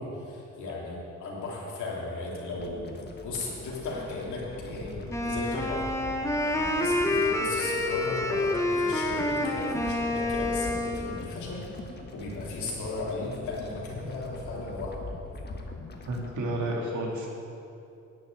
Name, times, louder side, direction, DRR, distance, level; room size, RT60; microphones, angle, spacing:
voice 1, 0.0-5.9 6.6-11.9 12.1-15.2, left 2 dB, 75° left, -4 dB, 3.2 m, -36 dB
sound 1, 2.6-16.3, left 3 dB, 35° left, 1.3 m, -42 dB
Wind instrument woodwind instrument, 5.1-11.3, left 2 dB, 10° left, 1.1 m, -28 dB
voice 2, 16.0-17.3, right 1 dB, 70° right, -1 dB, 2.5 m, -31 dB
10.5 x 6.3 x 8.7 m, 2.7 s
cardioid pair, 90°, 30 cm